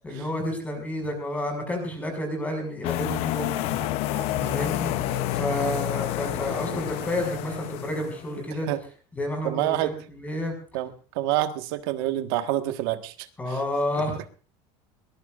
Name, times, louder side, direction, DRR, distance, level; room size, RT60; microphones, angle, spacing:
voice 1, 0.0-3.7 4.3-5.0 5.3-8.7 9.1-10.5 13.4-14.3, left 1 dB, 10° left, 5 dB, 5.9 m, -30 dB
sound 1, 2.8-8.4, left 16 dB, 55° left, 0.7 m, -29 dB
sound 2, 3.3-8.8, right 8 dB, 40° right, 3.2 m, -47 dB
voice 2, 9.4-9.9 10.7-13.3, right 14 dB, 80° right, 8 dB, 1.5 m, -27 dB
22.5 x 19.5 x 2.5 m, 0.39 s
cardioid pair, 160°, 12 cm